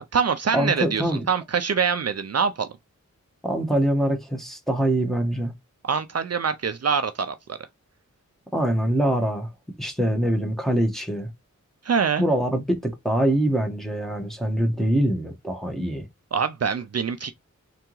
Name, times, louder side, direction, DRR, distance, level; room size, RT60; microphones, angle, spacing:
voice 1, 0.0-2.7 5.8-7.6 11.8-12.2 16.3-17.3, right 6 dB, 55° right, 0.5 m, -24 dB
voice 2, 0.5-1.2 3.4-5.5 8.5-9.5 9.8-11.3 12.2-16.1, right 1 dB, ahead, 1.2 m, -24 dB
3.8 x 3.4 x 3.0 m
wide cardioid pair, 80°, 30 cm